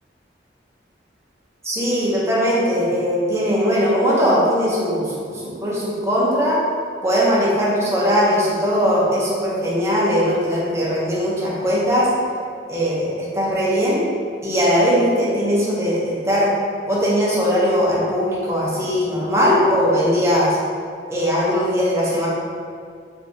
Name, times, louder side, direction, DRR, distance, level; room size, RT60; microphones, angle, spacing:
voice 1, 1.6-6.6 7.0-12.1 12.7-14.0 14.4-16.5 16.9-20.6 21.1-22.3, equal, 15° right, -6 dB, 0.6 m, -19 dB
3.3 x 2.7 x 2.6 m, 2.2 s
head